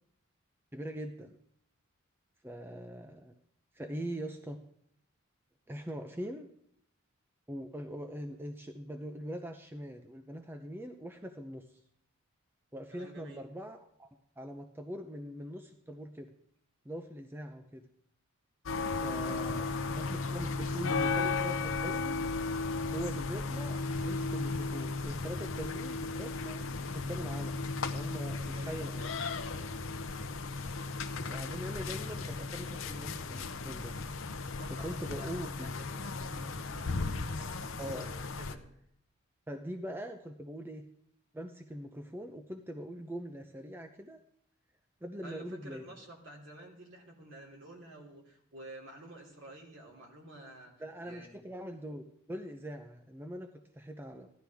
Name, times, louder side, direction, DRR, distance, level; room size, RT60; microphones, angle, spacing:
voice 1, 0.7-1.4 2.4-3.3 3.7-4.6 5.7-6.5 7.5-11.8 12.7-14.1 14.4-16.3 16.8-17.9 18.9-19.6 20.0-22.2 22.9-26.7 26.9-29.1 31.2-33.9 34.8-35.7 37.8-38.1 39.5-40.9 41.3-44.2 45.0-45.8 50.8-54.3, equal, 10° right, 6 dB, 0.5 m, -42 dB
voice 2, 12.9-13.5 19.2-19.8 28.3-28.9 34.6-38.7 45.2-50.7 51.0-51.4, right 1 dB, 60° right, 0 dB, 2.8 m, -50 dB
sound 1, 18.7-38.6, left 3 dB, 70° left, 0.7 m, -35 dB
15.5 x 11.5 x 3.5 m, 0.71 s
head